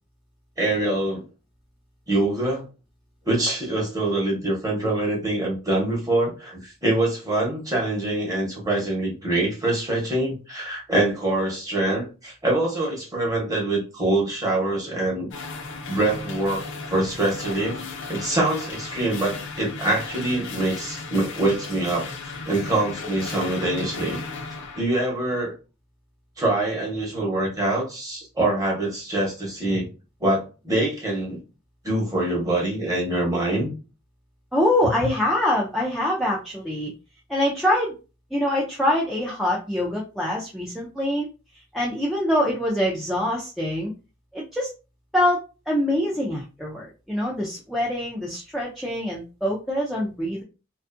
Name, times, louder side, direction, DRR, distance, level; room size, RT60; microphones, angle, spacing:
voice 1, 0.6-1.2 2.1-2.6 3.3-15.3 15.9-16.6 16.9-17.8 18.1-22.0 22.5-24.2 24.7-25.5 26.4-29.9 30.2-31.4 31.8-33.7 35.0-35.1, right 2 dB, 20° right, -2 dB, 0.9 m, -24 dB
sound 1, 15.3-24.8, left 3 dB, 65° left, 0.5 m, -35 dB
voice 2, 34.5-36.9 37.3-37.9 38.3-41.3 41.7-43.9 44.3-44.7 45.1-45.4 45.7-50.4, left 1 dB, ahead, -3 dB, 0.4 m, -24 dB
2.5 x 2.3 x 2.5 m, 0.32 s
head